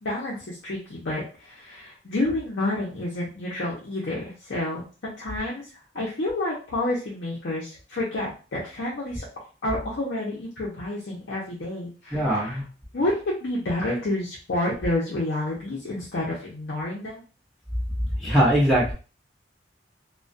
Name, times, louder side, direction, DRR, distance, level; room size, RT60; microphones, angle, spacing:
voice 1, 0.0-5.6 5.9-9.2 9.6-12.6 12.9-17.2, left 1 dB, 65° left, -6 dB, 0.6 m, -29 dB
voice 2, 12.1-12.6 18.2-18.9, equal, ahead, -7 dB, 0.9 m, -21 dB
2.2 x 2.1 x 2.5 m, 0.36 s
head